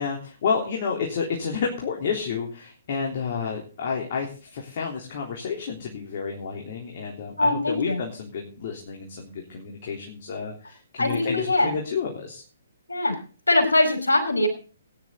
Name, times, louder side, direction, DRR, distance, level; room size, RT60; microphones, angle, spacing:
voice 1, 0.0-12.4, left 6 dB, 45° left, 0 dB, 3.5 m, -30 dB
voice 2, 7.4-8.0 11.0-11.7 12.9-13.2 13.5-14.5, left 2 dB, 80° left, 5 dB, 5.5 m, -22 dB
18.5 x 11.0 x 3.9 m, 0.38 s
figure-of-eight pair, 130°, 0 cm